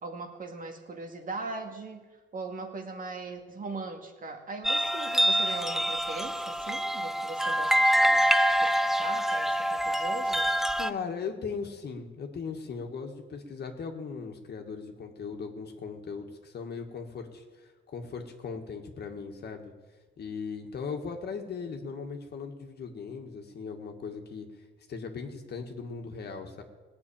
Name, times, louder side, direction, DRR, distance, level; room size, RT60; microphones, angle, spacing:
voice 1, 0.0-2.0 2.3-8.3 8.6-8.7 9.0-10.5, right 3 dB, 45° right, 4 dB, 2.1 m, -40 dB
sound 1, 4.6-10.9, equal, ahead, 0.4 m, -26 dB
voice 2, 10.8-19.7 20.2-24.5 24.9-26.6, left 5 dB, 55° left, 3 dB, 1.9 m, -38 dB
18.5 x 6.3 x 8.8 m, 1.3 s
cardioid pair, 90°, 20 cm